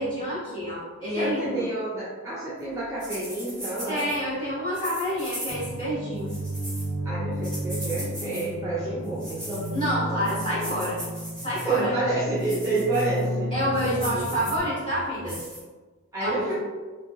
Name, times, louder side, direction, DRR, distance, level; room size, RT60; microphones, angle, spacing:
voice 1, 0.0-1.7 3.9-6.3 9.7-11.0 11.4-12.0 13.5-15.4 16.2-16.5, equal, 20° left, -11 dB, 1.3 m, -28 dB
voice 2, 1.2-4.1 7.0-9.7 11.6-13.5 13.9-14.4 16.1-16.5, right 2 dB, 15° right, -10 dB, 0.4 m, -29 dB
sound 1, 3.0-4.2 4.7-5.8 6.2-6.9 7.4-8.5 9.0-9.9 10.2-11.8 12.4-13.2 13.6-14.6 15.3-15.6, equal, 5° left, 0.9 m, -39 dB
sound 2, 5.5-14.6, right 1 dB, 80° right, 0.5 m, -33 dB
2.7 x 2.7 x 2.3 m, 1.4 s
head